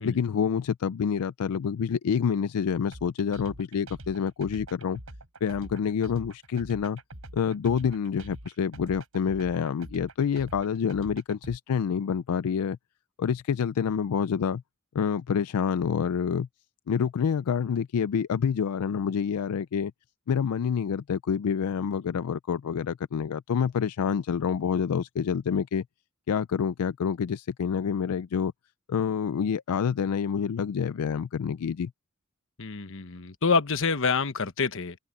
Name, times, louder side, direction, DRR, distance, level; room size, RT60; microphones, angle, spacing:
voice 1, 0.0-5.0 5.4-7.0 7.3-12.8 13.2-14.6 14.9-16.5 16.9-19.9 20.3-25.8 26.3-28.5 28.9-31.9, left 7 dB, 80° left, 0.4 m, -27 dB
sound 1, 2.9-11.6, right 1 dB, 70° right, 6.0 m, -45 dB
voice 2, 32.6-35.0, left 4 dB, 60° left, 1.1 m, -27 dB
head